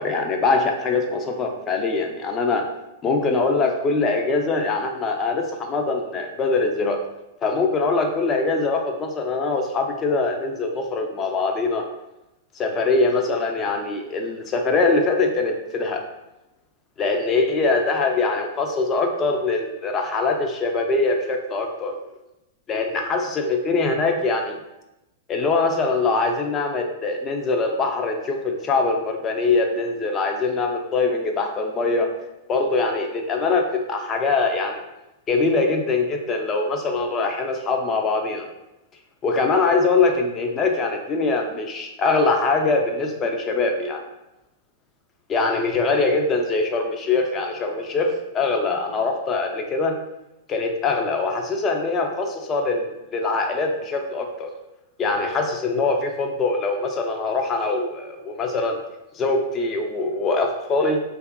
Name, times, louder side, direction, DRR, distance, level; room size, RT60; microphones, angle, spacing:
voice 1, 0.0-2.7 3.0-7.0 7.4-11.8 12.6-16.0 17.0-22.0 22.7-24.6 25.3-32.1 32.5-34.8 35.3-38.5 39.2-44.0 45.3-50.0 50.5-54.5 55.0-58.8 59.2-61.0, left 3 dB, 30° left, 3 dB, 0.4 m, -23 dB
2.7 x 2.3 x 2.3 m, 0.93 s
hypercardioid pair, 110°, 0 cm